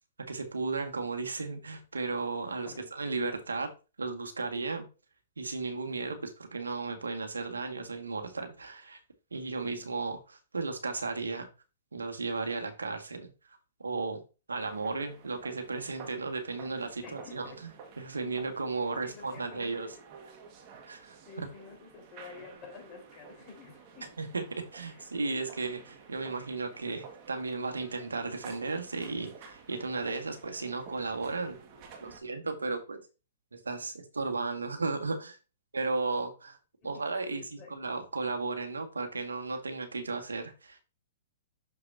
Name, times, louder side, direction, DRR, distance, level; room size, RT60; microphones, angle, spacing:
voice 1, 0.2-4.9 5.4-9.0 9.3-11.5 11.9-13.3 13.8-14.2 14.5-19.9 20.9-21.5 24.2-31.6 32.0-33.0 33.5-35.4 35.7-36.6 36.8-40.8, right 3 dB, 85° right, 1.8 m, -35 dB
voice 2, 2.6-3.1 9.7-10.0 17.0-17.6 19.0-20.0 21.3-24.2 24.9-25.1 36.9-37.7, left 5 dB, 30° left, 4.3 m, -50 dB
sound 1, 14.6-32.2, right 5 dB, 40° right, 1.7 m, -52 dB
7.1 x 6.6 x 2.7 m
hypercardioid pair, 115°, 0 cm